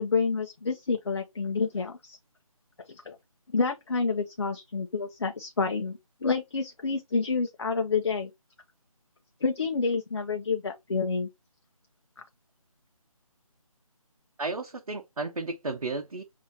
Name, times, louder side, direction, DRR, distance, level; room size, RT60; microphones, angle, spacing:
voice 1, 0.0-2.2 2.9-3.2 3.5-8.3 9.4-11.3, left 4 dB, 45° left, 0.7 m, -28 dB
voice 2, 14.4-16.2, right 3 dB, 70° right, 0.9 m, -33 dB
7.1 x 2.8 x 2.7 m
figure-of-eight pair, 160°, 19 cm